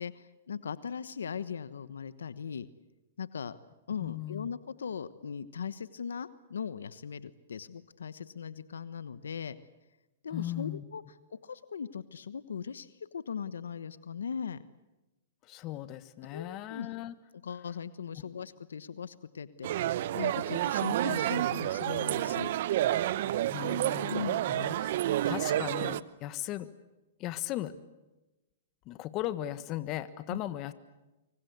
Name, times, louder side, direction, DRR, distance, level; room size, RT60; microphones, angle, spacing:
voice 1, 0.0-2.7 3.2-3.6 3.9-9.5 10.2-11.0 11.3-12.9 13.1-14.6 16.3-16.9 17.4-22.5 24.1-24.5 30.3-30.4, left 7 dB, 90° left, 15 dB, 1.1 m, -39 dB
voice 2, 4.0-4.5 10.3-10.8 15.4-17.2 23.4-26.7 27.2-27.7 28.8-30.7, left 14 dB, 35° left, 13 dB, 1.5 m, -37 dB
sound 1, 19.6-26.0, right 12 dB, 60° right, 0.9 m, -30 dB
25.0 x 25.0 x 8.1 m, 1.0 s
hypercardioid pair, 130°, 0 cm